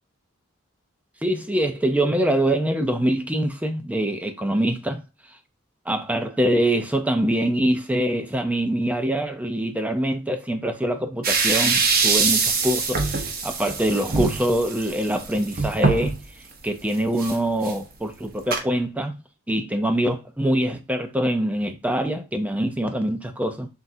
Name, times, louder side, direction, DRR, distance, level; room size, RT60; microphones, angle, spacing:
voice 1, 1.2-5.0 5.9-16.2 16.6-19.2 19.5-23.7, right 1 dB, 5° right, 0.6 m, -24 dB
sound 1, 11.2-16.2 16.7-16.8 17.2-17.4 17.6-17.7 18.5-18.6, right 4 dB, 45° right, 0.9 m, -23 dB
6.0 x 2.6 x 2.7 m
head